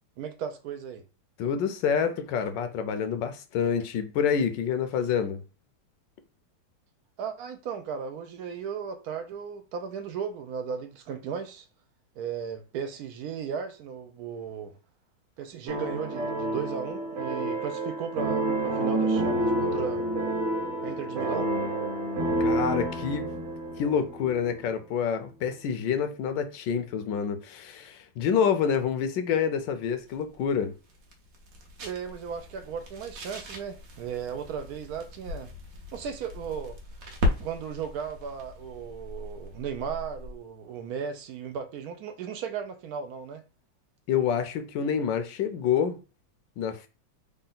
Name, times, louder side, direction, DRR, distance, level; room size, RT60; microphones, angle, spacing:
voice 1, 0.2-1.0 7.2-11.7 12.2-14.7 15.4-20.0 20.8-21.5 31.8-35.5 35.9-36.8 37.4-43.4, right 7 dB, 75° right, 0.8 m, -36 dB
voice 2, 1.4-5.4 22.4-23.2 23.8-30.7 44.1-46.0 46.6-46.9, left 7 dB, 75° left, 1.2 m, -27 dB
sound 1, 15.7-24.7, right 1 dB, 40° right, 1.3 m, -29 dB
sound 2, 29.8-40.5, left 2 dB, 55° right, 1.1 m, -37 dB
3.8 x 2.2 x 3.9 m
omnidirectional pair, 2.1 m